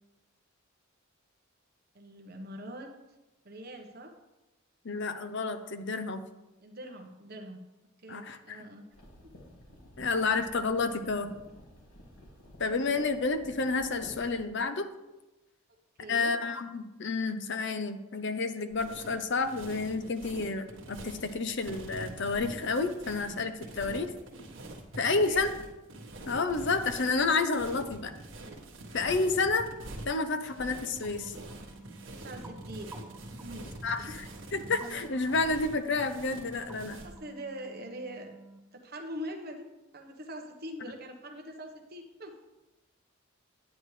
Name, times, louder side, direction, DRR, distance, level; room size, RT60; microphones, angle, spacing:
voice 1, 1.9-2.9 3.4-4.1 6.6-7.6 8.0-8.9 16.0-16.3 25.1-25.4 32.1-32.9 33.4-33.7 34.1-34.2 37.0-38.3 38.7-39.6 39.9-42.3, equal, 45° right, 3 dB, 1.1 m, -43 dB
voice 2, 4.8-6.2 8.1-8.6 10.0-11.3 12.6-14.9 16.1-24.1 25.0-25.5 26.3-28.1 28.9-29.7 30.1-31.3 33.8-34.1 34.5-37.0, left 3 dB, 55° left, 8 dB, 0.7 m, -30 dB
sound 1, 8.9-14.5, left 1 dB, 80° left, 2.4 m, -52 dB
sound 2, 18.7-37.2, right 2 dB, 60° right, 1.5 m, -45 dB
sound 3, 31.0-38.6, right 2 dB, 10° right, 0.7 m, -51 dB
9.8 x 9.3 x 3.3 m, 1.0 s
head